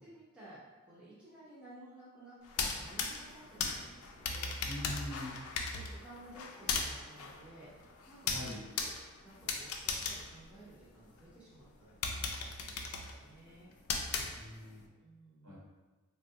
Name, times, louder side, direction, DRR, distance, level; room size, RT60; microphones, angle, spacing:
voice 1, 0.0-4.5 5.7-7.7 8.1-8.4 8.8-8.9 9.2-13.7 15.0-15.6, right 1 dB, 5° right, -10 dB, 0.7 m, -55 dB
sound 1, 2.4-11.2 11.6-11.7 12.0-14.8, left 4 dB, 85° left, 0.4 m, -38 dB
voice 2, 4.6-5.3 8.3-8.6 14.3-14.8 15.4-15.6, left 1 dB, 65° right, -7 dB, 1.1 m, -42 dB
3.6 x 2.3 x 2.8 m, 1.2 s
head